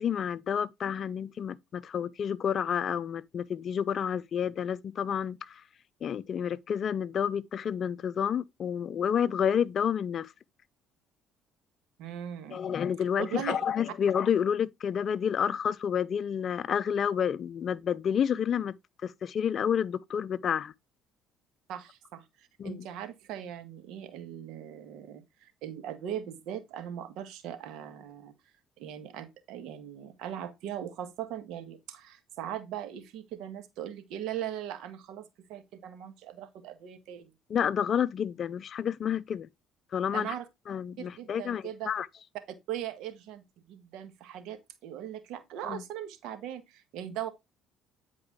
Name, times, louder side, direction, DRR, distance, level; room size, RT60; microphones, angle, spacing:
voice 1, 0.0-5.6 6.0-10.3 12.5-18.7 19.0-20.7 22.6-22.9 37.5-39.5 39.9-40.3 40.7-42.1 45.7-45.8, left 8 dB, 50° left, 0.5 m, -29 dB
voice 2, 12.0-12.6 13.2-13.6 21.7-28.3 28.8-37.3 40.1-40.5 41.0-41.9 42.7-47.3, right 10 dB, 75° right, 1.6 m, -39 dB
9.6 x 4.8 x 3.6 m
supercardioid pair, 85°, 0 cm